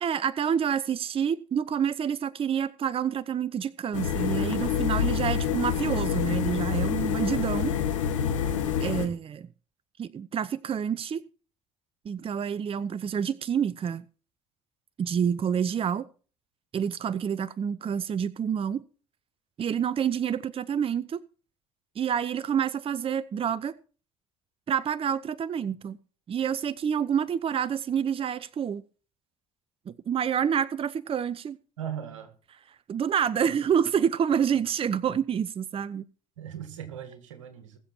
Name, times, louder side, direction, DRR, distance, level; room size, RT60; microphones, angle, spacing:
voice 1, 0.0-7.7 8.8-9.5 10.0-11.2 12.0-14.1 15.0-16.1 16.7-18.8 19.6-21.2 22.0-23.7 24.7-26.0 26.3-28.8 29.9-31.6 32.9-36.0, right 8 dB, 35° right, 0.7 m, -28 dB
sound 1, 3.9-9.1, left 7 dB, 85° left, 1.6 m, -27 dB
voice 2, 31.8-32.3 36.4-37.8, right 9 dB, 85° right, 2.0 m, -38 dB
21.0 x 7.0 x 4.5 m
hypercardioid pair, 60°, 16 cm